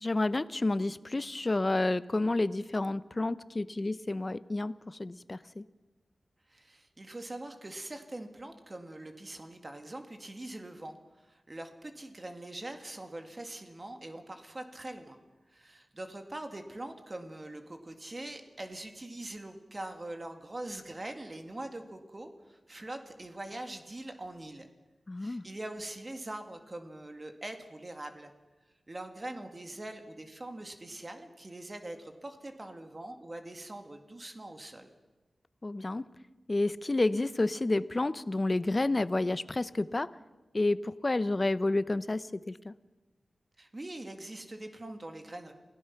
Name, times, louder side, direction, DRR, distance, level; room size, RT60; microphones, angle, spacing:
voice 1, 0.0-5.6 25.1-25.4 35.6-36.1 36.5-40.1 40.5-42.7, left 2 dB, 35° left, 16 dB, 0.7 m, -30 dB
voice 2, 6.5-15.2 15.5-24.7 25.2-28.3 28.9-34.9 43.6-45.5, right 1 dB, 35° right, 6 dB, 2.0 m, -43 dB
28.0 x 17.0 x 5.9 m, 1.1 s
wide cardioid pair, 65°, 0 cm